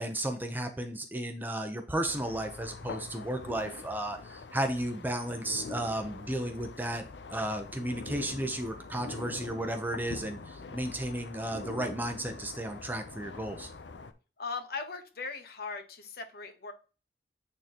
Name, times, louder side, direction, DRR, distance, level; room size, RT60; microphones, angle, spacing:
voice 1, 0.0-7.0 7.3-13.7, right 1 dB, 10° right, 5 dB, 0.8 m, -34 dB
sound 1, 2.0-14.1, left 4 dB, 80° left, 0.6 m, -44 dB
voice 2, 14.4-16.7, left 4 dB, 60° left, 7 dB, 1.1 m, -39 dB
8.9 x 3.9 x 3.0 m, 0.34 s
head